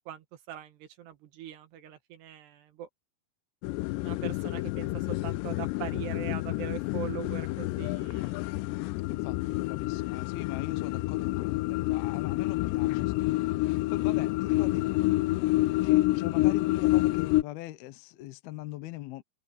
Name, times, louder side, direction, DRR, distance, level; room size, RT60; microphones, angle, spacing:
voice 1, 0.0-2.9 4.0-8.5, right 11 dB, 75° right, 3.9 m, -41 dB
sound 1, 3.6-17.4, left 19 dB, 90° left, 2.8 m, -28 dB
voice 2, 9.1-15.0 15.8-19.2, left 15 dB, 75° left, 2.7 m, -41 dB
open air
omnidirectional pair, 4.9 m